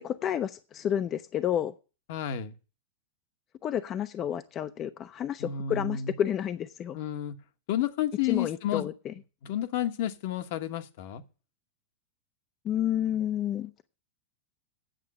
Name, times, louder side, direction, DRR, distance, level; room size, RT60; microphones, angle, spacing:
voice 1, 0.0-1.7 3.6-7.0 8.3-9.1 12.6-13.7, left 10 dB, 35° left, 0.6 m, -30 dB
voice 2, 2.1-2.5 5.4-6.1 6.9-7.4 7.7-8.9 9.4-11.2, left 10 dB, 60° left, 1.1 m, -31 dB
9.1 x 6.7 x 8.6 m
hypercardioid pair, 110°, 0 cm